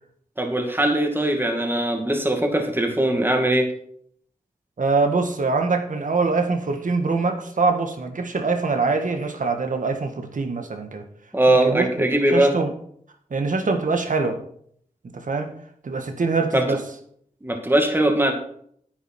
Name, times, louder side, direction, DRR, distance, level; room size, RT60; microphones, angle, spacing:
voice 1, 0.4-3.7 11.3-12.5 16.5-16.8 17.4-18.3, right 1 dB, 15° right, 2 dB, 2.4 m, -20 dB
voice 2, 4.8-11.0 11.5-11.9 12.3-12.7 13.3-14.4 15.0-15.5 15.8-16.8, right 4 dB, 65° right, 5 dB, 1.7 m, -23 dB
10.0 x 9.4 x 4.5 m, 0.64 s
cardioid pair, 55°, 15 cm